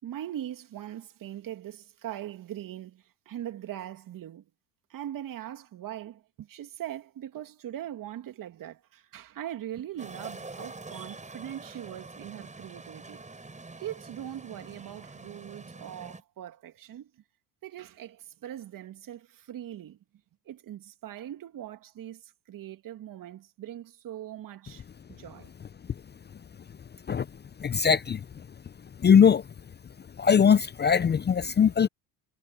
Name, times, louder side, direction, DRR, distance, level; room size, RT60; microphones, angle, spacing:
voice 1, 0.0-4.4 4.9-13.2 13.8-17.1 17.6-20.0 20.5-24.8 25.1-25.5, right 11 dB, 50° right, 2.9 m, -41 dB
sound 1, 10.0-16.2, right 3 dB, 15° right, 7.2 m, -45 dB
voice 2, 27.6-28.3 29.0-29.5 30.2-31.9, left 7 dB, 25° left, 0.7 m, -21 dB
hypercardioid pair, 75°, 41 cm